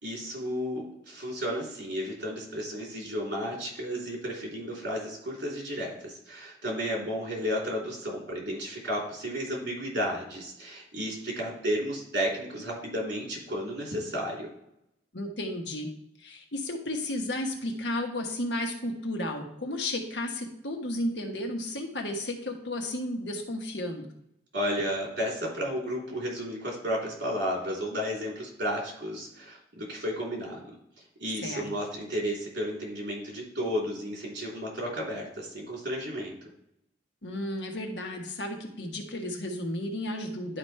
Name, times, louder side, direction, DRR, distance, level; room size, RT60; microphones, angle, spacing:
voice 1, 0.0-14.5 24.5-30.6 31.2-36.4, equal, 75° right, -3 dB, 3.3 m, -33 dB
voice 2, 15.1-15.9 16.2-24.1 31.4-31.7 37.2-40.6, left 1 dB, 90° left, 3 dB, 1.3 m, -33 dB
11.0 x 5.1 x 3.3 m, 0.79 s
head